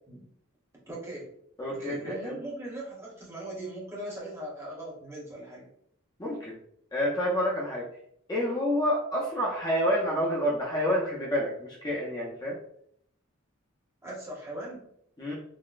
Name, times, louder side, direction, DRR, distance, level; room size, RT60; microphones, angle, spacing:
voice 1, 0.9-1.3 1.7-5.7 14.0-14.8, right 1 dB, 15° right, -5 dB, 0.8 m, -39 dB
voice 2, 1.6-2.4 6.2-6.5 6.9-7.8 8.3-12.6 15.2-15.3, equal, 20° left, -5 dB, 0.5 m, -28 dB
3.8 x 2.1 x 2.4 m, 0.68 s
head